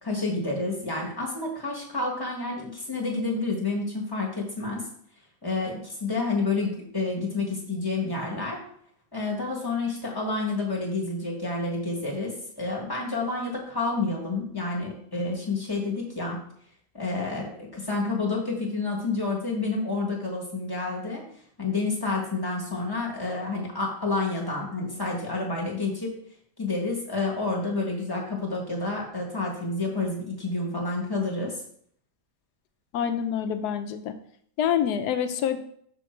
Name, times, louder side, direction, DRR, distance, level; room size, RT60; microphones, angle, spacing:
voice 1, 0.0-4.8 5.4-8.6 9.1-16.4 16.9-21.2 21.6-26.2 26.6-31.5, left 3 dB, 15° left, -3 dB, 1.3 m, -29 dB
voice 2, 32.9-34.1 34.6-35.6, left 9 dB, 90° left, 9 dB, 1.2 m, -26 dB
6.4 x 3.6 x 4.4 m, 0.64 s
omnidirectional pair, 1.7 m